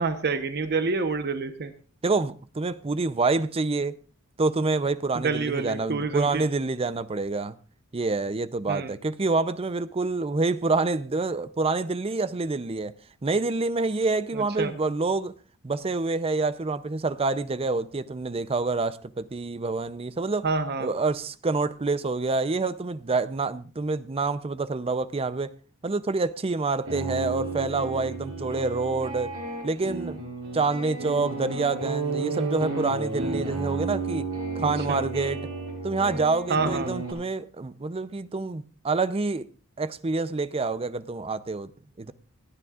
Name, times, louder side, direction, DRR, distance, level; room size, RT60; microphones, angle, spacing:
voice 1, 0.0-1.7 5.2-6.4 8.7-8.9 14.3-14.7 20.4-20.9 34.6-35.0 36.5-36.9, right 4 dB, 50° right, 0.9 m, -28 dB
voice 2, 2.0-4.0 4.4-7.6 7.9-12.9 13.2-15.3 15.6-20.5 20.8-25.5 25.8-29.3 29.6-30.2 30.5-34.3 34.6-35.5 35.8-39.5 39.8-41.7 42.0-42.1, right 3 dB, 25° right, 0.5 m, -27 dB
sound 1, 26.8-37.1, right 3 dB, 75° right, 6.0 m, -32 dB
27.5 x 9.7 x 2.4 m
head